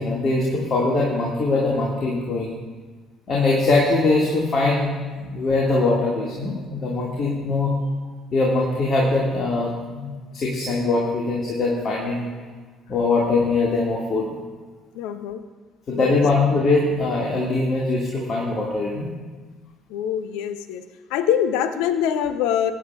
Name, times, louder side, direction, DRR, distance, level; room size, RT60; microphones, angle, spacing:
voice 1, 0.0-2.5 3.3-4.9 5.2-7.7 8.3-12.3 12.9-14.3 15.9-19.1, left 3 dB, 40° left, -3 dB, 2.0 m, -22 dB
voice 2, 14.9-15.4 15.9-16.2 19.9-20.8 21.1-22.7, left 9 dB, 65° left, 12 dB, 0.6 m, -24 dB
20.5 x 9.2 x 2.4 m, 1.4 s
figure-of-eight pair, 50°, 0 cm